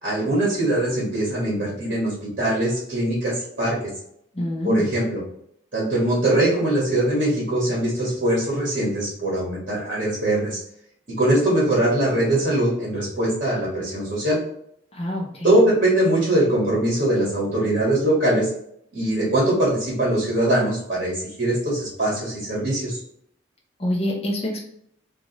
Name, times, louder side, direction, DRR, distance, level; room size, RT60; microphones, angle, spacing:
voice 1, 0.0-3.8 4.6-5.2 5.7-10.6 11.1-14.4 15.4-18.5 18.9-23.0, right 1 dB, 40° right, -6 dB, 1.3 m, -22 dB
voice 2, 4.3-4.9 14.9-15.6 23.8-24.6, equal, 30° left, -3 dB, 0.7 m, -26 dB
3.3 x 2.5 x 3.9 m, 0.69 s
head